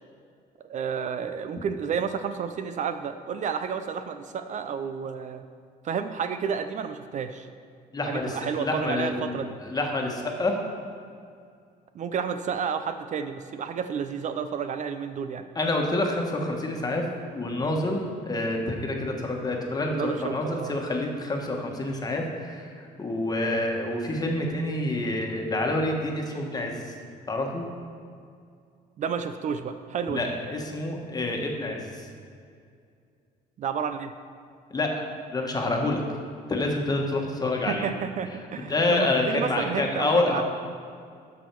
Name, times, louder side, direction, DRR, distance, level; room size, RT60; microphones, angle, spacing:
voice 1, 0.6-5.4 5.8-7.5 8.1-9.6 11.9-15.5 19.9-20.7 29.0-30.3 33.6-34.1 37.7-40.4, right 7 dB, 45° right, 9 dB, 0.5 m, -31 dB
voice 2, 7.9-10.6 15.5-17.0 17.3-26.9 27.3-27.6 30.1-32.1 34.7-36.0 36.5-37.9 38.7-40.4, left 2 dB, 20° left, 1 dB, 1.4 m, -28 dB
11.5 x 6.2 x 4.7 m, 2.3 s
cardioid pair, 110°, 17 cm